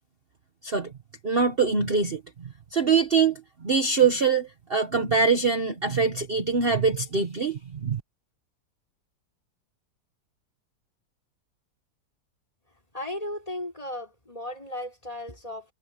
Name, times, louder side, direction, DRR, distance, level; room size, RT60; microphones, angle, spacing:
voice 1, 1.2-2.2 2.7-8.0, right 5 dB, 35° right, 1.4 m, -23 dB
voice 2, 12.9-15.7, left 1 dB, 20° left, 4.9 m, -35 dB
omnidirectional pair, 1.8 m